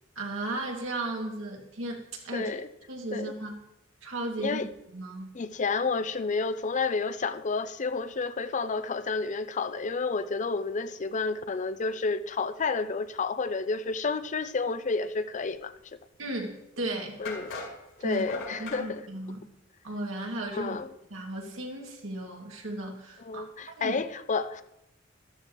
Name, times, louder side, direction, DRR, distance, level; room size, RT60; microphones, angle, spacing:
voice 1, 0.2-2.5 2.9-3.6 4.0-4.7 4.9-5.3 16.2-17.2 18.0-18.2 18.6-19.4 19.8-20.8 21.1-23.5 23.8-24.0, right 2 dB, 85° right, 2.3 m, -35 dB
voice 2, 2.3-2.7 3.1-3.3 4.4-4.7 5.3-15.7 17.2-17.5 18.0-19.0 20.5-20.9 23.3-24.6, left 4 dB, 40° left, 0.5 m, -30 dB
sound 1, 16.4-16.5 17.3-18.9, left 3 dB, 80° left, 5.2 m, -39 dB
13.0 x 13.0 x 3.1 m
head